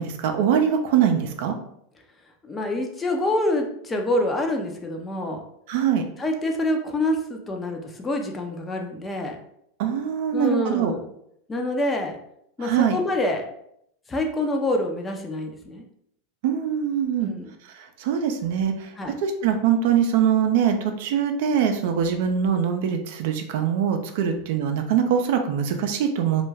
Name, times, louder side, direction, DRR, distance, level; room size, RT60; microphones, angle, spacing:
voice 1, 0.0-1.5 5.7-6.0 9.8-10.9 12.6-13.0 16.4-17.3 17.7-18.9 19.2-26.4, right 8 dB, 70° right, 5 dB, 0.4 m, -23 dB
voice 2, 2.4-5.4 6.2-9.4 10.3-11.0 11.5-12.2 12.6-13.5 14.1-15.8 17.2-17.5 19.0-19.1 24.2-24.4, left 1 dB, 20° left, 3 dB, 0.5 m, -26 dB
2.3 x 2.1 x 3.2 m, 0.72 s
hypercardioid pair, 105°, 0 cm